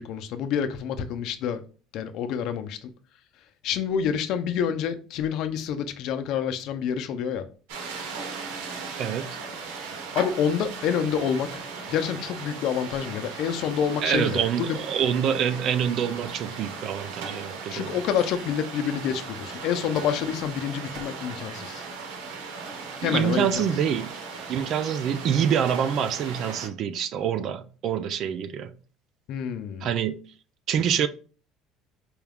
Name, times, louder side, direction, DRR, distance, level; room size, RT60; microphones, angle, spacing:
voice 1, 0.0-1.6 1.9-2.9 3.6-7.4 10.1-11.5 11.9-14.8 17.7-21.8 23.0-23.7 29.3-29.9, left 8 dB, 55° left, 0.5 m, -27 dB
sound 1, 7.7-26.7, right 5 dB, 85° right, 1.0 m, -37 dB
voice 2, 9.0-9.4 14.0-17.9 23.0-24.1 24.5-28.7 29.8-30.2 30.7-31.1, right 8 dB, 45° right, 0.4 m, -26 dB
4.5 x 2.3 x 3.4 m
cardioid pair, 145°, 0 cm